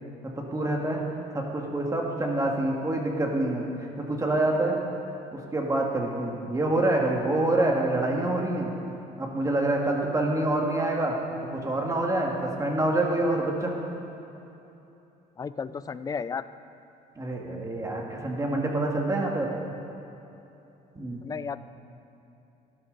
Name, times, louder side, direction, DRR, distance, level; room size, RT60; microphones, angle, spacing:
voice 1, 0.2-1.0 1.3-3.7 4.0-4.8 5.3-8.7 9.2-11.2 11.5-13.8 15.7-15.8 17.2-19.5 21.0-21.3, right 2 dB, 20° right, 0 dB, 1.9 m, -26 dB
voice 2, 15.4-16.4 21.2-21.6, left 5 dB, 20° left, 14 dB, 0.4 m, -33 dB
13.5 x 12.0 x 4.0 m, 2.9 s
cardioid pair, 110°, 17 cm